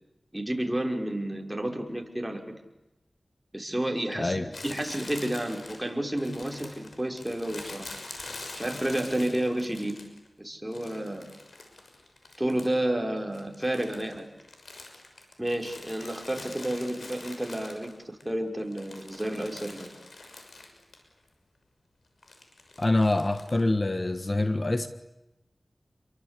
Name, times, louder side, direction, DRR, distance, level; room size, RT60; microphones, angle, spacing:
voice 1, 0.3-2.5 3.5-7.9 8.6-10.0 10.4-11.3 12.4-14.3 15.4-19.9, right 1 dB, 15° right, 2 dB, 5.7 m, -31 dB
Crumpling crinkling, 4.5-10.3 10.7-12.9 13.2-18.2 18.6-21.0 21.3-21.4 22.2-23.6, left 2 dB, 85° left, 6.3 m, -45 dB
voice 2, 22.8-24.9, left 2 dB, 40° left, 9 dB, 1.6 m, -25 dB
29.5 x 23.5 x 8.6 m, 0.95 s
cardioid pair, 45°, 0 cm